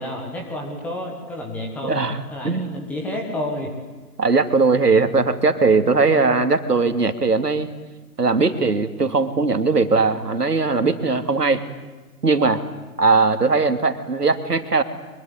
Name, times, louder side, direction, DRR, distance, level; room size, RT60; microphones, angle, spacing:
voice 1, 0.0-2.0 2.3-3.7, left 1 dB, 5° left, 1 dB, 1.4 m, -30 dB
voice 2, 1.8-2.2 2.4-2.8 4.2-7.7 8.2-11.6 12.2-12.6 13.0-14.8, right 4 dB, 75° right, 9 dB, 2.8 m, -19 dB
24.0 x 23.5 x 9.7 m, 1.3 s
figure-of-eight pair, 150°, 48 cm